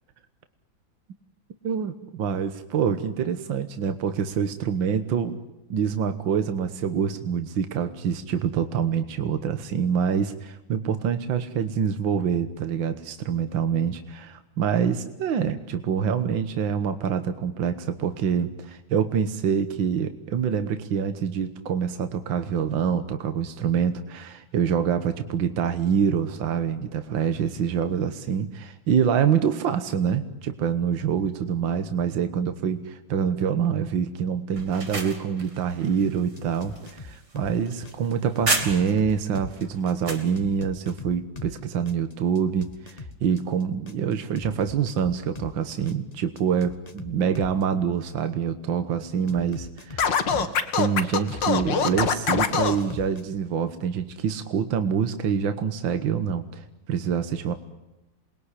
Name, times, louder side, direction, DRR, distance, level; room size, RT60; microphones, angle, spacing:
voice 1, 2.2-5.4 5.7-57.5, right 7 dB, 75° right, 9 dB, 2.0 m, -26 dB
sound 1, 34.5-39.1 39.5-40.3, right 3 dB, 60° right, 4.1 m, -32 dB
sound 2, 36.4-37.5 37.8-41.6 41.9-45.5 45.9-47.6 49.3-50.9 51.3-53.2, left 4 dB, 20° left, 1.4 m, -41 dB
Scratching (performance technique), 50.0-52.8, left 6 dB, 65° left, 2.2 m, -23 dB
28.5 x 21.0 x 9.9 m, 0.99 s
omnidirectional pair, 2.1 m